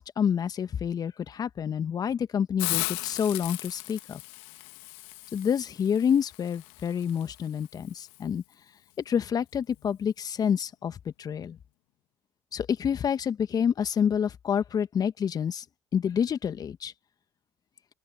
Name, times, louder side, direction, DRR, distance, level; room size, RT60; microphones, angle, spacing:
voice 1, 0.0-4.2 5.3-8.4 9.0-11.6 12.5-15.6 15.9-16.9, left 8 dB, 45° left, 1.6 m, -28 dB
Hiss, 2.6-8.2, left 24 dB, 70° left, 1.4 m, -37 dB
open air
hypercardioid pair, 60°, 9 cm